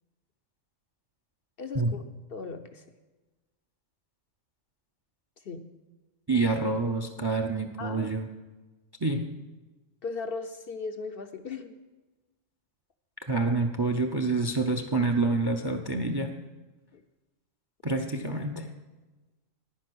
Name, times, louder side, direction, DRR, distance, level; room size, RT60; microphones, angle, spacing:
voice 1, 1.6-2.8 5.4-5.6 7.8-8.1 10.0-11.8 16.9-17.0, left 4 dB, 55° left, 7 dB, 0.7 m, -37 dB
voice 2, 6.3-8.3 9.0-9.2 13.3-16.3 17.8-18.7, right 3 dB, 30° right, 6 dB, 0.4 m, -27 dB
10.0 x 9.8 x 6.2 m, 1.2 s
omnidirectional pair, 1.4 m